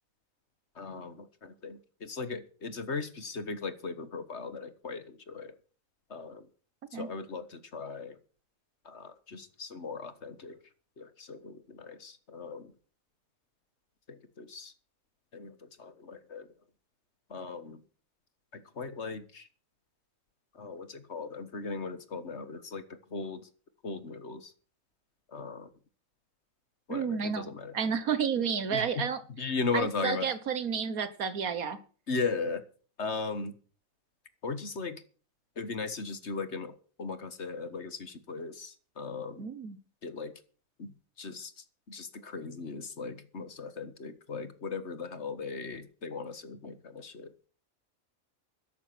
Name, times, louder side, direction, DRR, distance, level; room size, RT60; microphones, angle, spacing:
voice 1, 0.8-5.5 6.1-6.5 6.9-8.2 8.9-10.6 11.0-12.7 14.1-14.7 15.3-16.5 17.3-17.8 18.5-19.5 20.5-23.5 23.8-24.5 25.3-25.7 26.9-27.7 28.7-29.0 29.4-30.3 32.1-32.6 33.0-33.6 34.4-35.0 35.6-39.5 40.0-40.4 40.8-47.3, left 4 dB, 50° left, 11 dB, 1.7 m, -38 dB
voice 2, 26.9-29.2 29.7-31.8 39.4-39.8, right 6 dB, 80° right, 13 dB, 1.7 m, -31 dB
13.0 x 11.5 x 5.9 m, 0.40 s
omnidirectional pair, 1.5 m